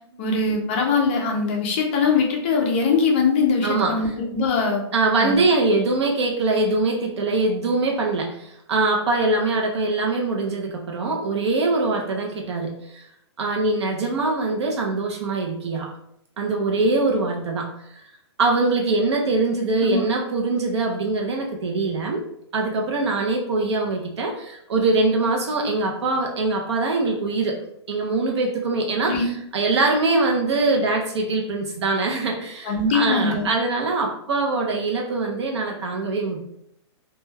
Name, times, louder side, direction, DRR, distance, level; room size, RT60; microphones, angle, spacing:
voice 1, 0.2-4.8 5.2-5.4 19.8-20.0 29.0-29.2 32.7-33.5, left 4 dB, 25° left, 0 dB, 0.4 m, -21 dB
voice 2, 3.6-4.1 4.9-13.1 13.4-15.9 16.4-17.7 18.0-18.1 18.4-22.2 22.5-27.6 27.9-36.4, right 3 dB, 70° right, 0 dB, 0.5 m, -23 dB
2.2 x 2.1 x 3.2 m, 0.75 s
hypercardioid pair, 170°, 15 cm